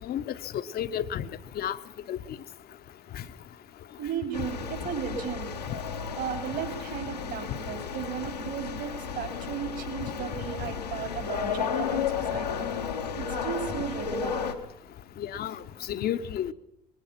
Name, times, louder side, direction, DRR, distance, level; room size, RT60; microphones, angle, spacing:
voice 1, 0.1-1.3 1.6-1.8 2.1-2.2 3.1-3.2 15.2-15.6 15.9-16.5, left 10 dB, 50° left, 11 dB, 1.1 m, -31 dB
voice 2, 4.0-5.5 6.2-12.7 13.2-14.4, right 8 dB, 60° right, 6 dB, 4.8 m, -35 dB
sound 1, 4.3-14.5, left 7 dB, 90° left, 1.6 m, -33 dB
21.5 x 21.5 x 6.0 m, 0.80 s
figure-of-eight pair, 55°, 20 cm